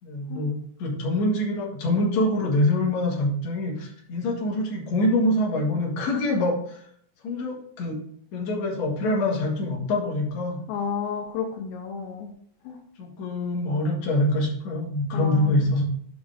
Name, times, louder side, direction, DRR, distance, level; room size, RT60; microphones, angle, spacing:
voice 1, 0.0-6.8 7.2-8.0 8.3-10.6 13.0-15.8, left 1 dB, 50° left, -2 dB, 2.6 m, -25 dB
voice 2, 10.7-12.3 12.6-12.8 15.1-15.6, left 6 dB, 80° left, 3 dB, 2.8 m, -31 dB
7.3 x 5.1 x 4.9 m, 0.64 s
omnidirectional pair, 5.1 m